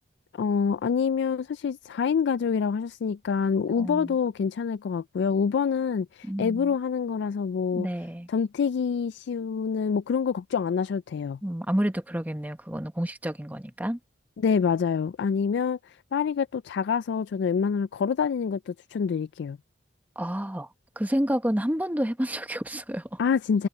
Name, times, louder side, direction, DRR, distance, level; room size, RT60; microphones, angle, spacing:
voice 1, 0.3-7.9 8.3-11.4 14.4-19.6 23.2-23.7, left 6 dB, 65° left, 0.3 m, -26 dB
voice 2, 3.7-4.1 6.2-6.7 7.7-8.3 11.4-14.0 20.2-20.7 21.0-23.2, equal, 10° right, 1.0 m, -29 dB
head